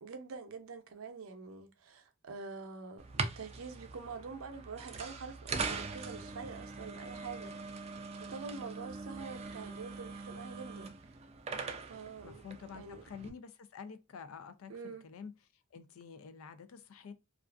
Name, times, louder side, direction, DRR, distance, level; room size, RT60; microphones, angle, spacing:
voice 1, 0.0-11.1 11.9-12.4 12.7-13.0 14.7-15.0, right 4 dB, 90° right, 0.5 m, -46 dB
sound 1, 3.0-13.3, right 4 dB, 30° right, 0.3 m, -42 dB
voice 2, 12.2-15.3 15.7-17.1, left 6 dB, 90° left, 0.4 m, -49 dB
2.4 x 2.4 x 2.2 m
head